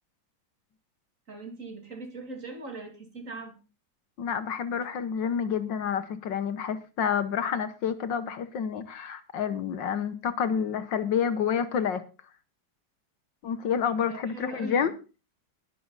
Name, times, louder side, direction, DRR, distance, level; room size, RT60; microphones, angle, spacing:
voice 1, 1.3-3.5 14.1-14.9, right 2 dB, 40° right, 3.1 m, -40 dB
voice 2, 4.2-12.0 13.4-14.9, left 7 dB, 70° left, 1.7 m, -29 dB
21.0 x 7.6 x 4.0 m
omnidirectional pair, 2.2 m